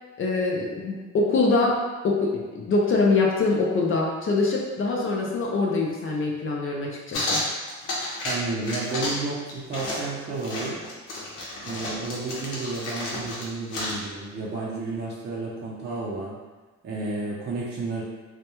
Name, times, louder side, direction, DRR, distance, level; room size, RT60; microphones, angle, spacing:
voice 1, 0.2-7.4, left 3 dB, 45° left, -2 dB, 0.5 m, -24 dB
sound 1, 7.1-8.4 8.6-9.2 9.5-14.0, left 1 dB, 90° left, 0.7 m, -31 dB
voice 2, 8.2-10.8 11.6-16.4 16.8-18.0, right 3 dB, 35° right, -5 dB, 0.5 m, -31 dB
2.2 x 2.1 x 2.9 m, 1.2 s
cardioid pair, 90°, 30 cm